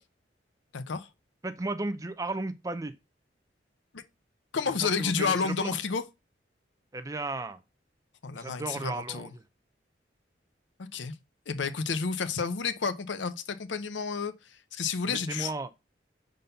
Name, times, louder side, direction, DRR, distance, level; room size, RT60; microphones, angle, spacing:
voice 1, 0.7-1.1 3.9-4.0 4.5-6.0 8.2-9.3 10.8-11.1 11.5-14.3 14.7-15.5, left 5 dB, 80° left, 0.7 m, -30 dB
voice 2, 1.4-2.9 4.8-5.7 6.9-7.6 8.4-9.3 15.1-15.7, right 2 dB, 20° right, 0.4 m, -34 dB
5.3 x 3.9 x 5.6 m
head